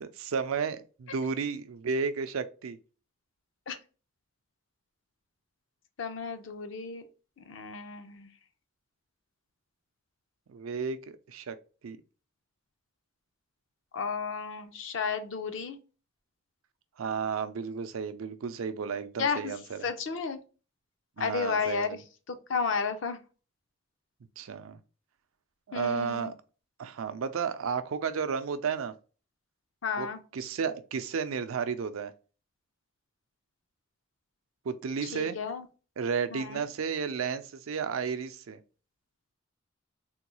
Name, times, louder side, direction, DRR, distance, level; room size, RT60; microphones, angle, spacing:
voice 1, 0.0-2.8 10.5-11.5 11.8-12.0 17.0-19.9 21.2-22.0 24.4-24.8 25.7-26.3 26.8-28.9 30.0-30.1 30.3-32.1 34.6-35.4 36.0-38.6, right 6 dB, 80° right, 0.4 m, -33 dB
voice 2, 6.0-7.0 7.4-8.3 13.9-15.8 19.2-19.5 19.8-20.4 21.2-22.0 22.3-23.2 25.7-26.3 29.8-30.2 35.0-35.7 36.3-36.7, left 5 dB, 65° left, 0.5 m, -32 dB
3.7 x 2.3 x 3.0 m
head